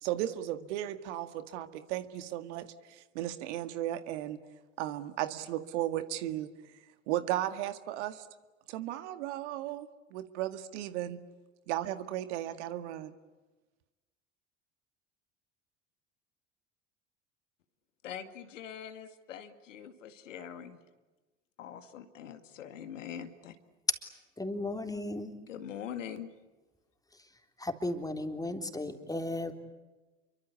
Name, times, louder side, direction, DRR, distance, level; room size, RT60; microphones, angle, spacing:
voice 1, 0.0-4.4 4.8-6.5 7.1-8.3 8.7-11.2 11.7-13.1, right 13 dB, 65° right, 10 dB, 2.0 m, -35 dB
voice 2, 18.0-20.8 21.6-23.6 25.5-26.3, left 9 dB, 75° left, 8 dB, 2.3 m, -43 dB
voice 3, 24.4-25.3 27.6-29.5, left 1 dB, 10° left, 5 dB, 3.7 m, -35 dB
29.0 x 24.0 x 8.5 m, 1.2 s
figure-of-eight pair, 70°, 38 cm